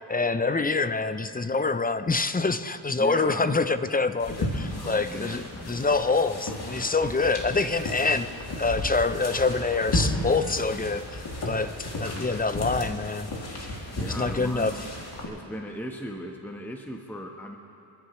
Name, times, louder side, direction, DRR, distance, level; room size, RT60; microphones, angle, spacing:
voice 1, 0.1-11.7 12.0-13.3 14.1-14.7, left 3 dB, 20° left, 12 dB, 0.6 m, -26 dB
voice 2, 2.9-3.6 4.8-5.5 13.8-14.8 15.3-17.6, equal, 5° left, 2 dB, 1.1 m, -38 dB
sound 1, 4.2-15.3, left 1 dB, 55° left, 2.7 m, -33 dB
29.0 x 9.9 x 3.1 m, 2.8 s
cardioid pair, 70°, 47 cm